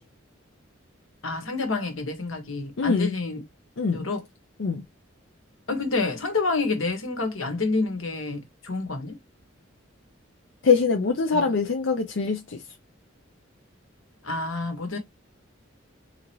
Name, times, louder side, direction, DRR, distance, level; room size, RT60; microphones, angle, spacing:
voice 1, 1.2-3.4 3.9-4.2 5.7-9.2 11.3-11.4 14.2-15.0, left 3 dB, 90° left, 1.3 m, -28 dB
voice 2, 2.8-3.2 3.8-4.0 4.6-4.8 10.6-12.6, left 5 dB, 65° left, 0.5 m, -23 dB
3.8 x 2.9 x 3.0 m
head